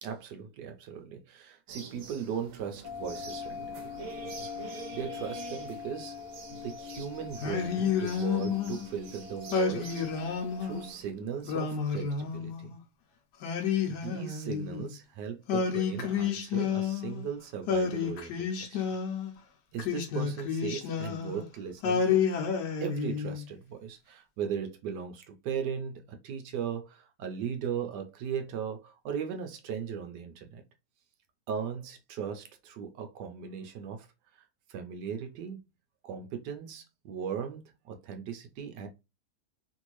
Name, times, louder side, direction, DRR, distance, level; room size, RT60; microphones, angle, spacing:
voice 1, 0.0-3.9 4.2-6.2 6.5-10.0 10.6-12.7 13.9-18.8 19.7-22.2 22.8-30.6 31.5-34.1 34.7-35.6 36.0-38.9, right 7 dB, 85° right, 1.2 m, -38 dB
herring seller medina marrakesh, 1.7-11.1, right 4 dB, 60° right, 1.1 m, -47 dB
sound 1, 2.8-10.9, left 7 dB, 65° left, 0.9 m, -43 dB
Singing, 7.4-8.9 9.5-10.8 11.4-12.8 13.4-14.9 15.5-17.3 17.7-19.3 19.8-21.4 21.8-23.4, left 6 dB, 85° left, 1.3 m, -30 dB
3.2 x 2.6 x 3.0 m
omnidirectional pair, 1.8 m